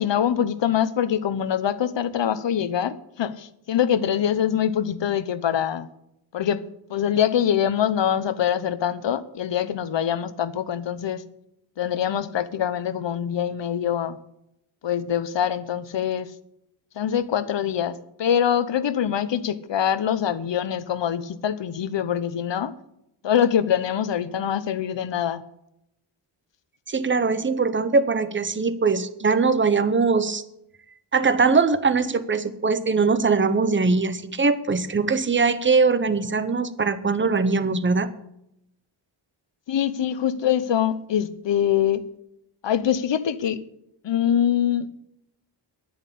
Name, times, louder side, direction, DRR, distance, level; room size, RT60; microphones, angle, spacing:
voice 1, 0.0-5.9 6.3-6.6 6.9-11.2 11.8-14.2 14.8-16.3 17.0-22.7 23.2-25.4 39.7-42.1 42.6-43.6 44.0-44.9, left 9 dB, 65° left, 14 dB, 1.0 m, -24 dB
voice 2, 26.9-30.4 31.1-38.1, right 4 dB, 25° right, 13 dB, 0.8 m, -21 dB
10.5 x 10.0 x 8.4 m, 0.80 s
wide cardioid pair, 145°, 47 cm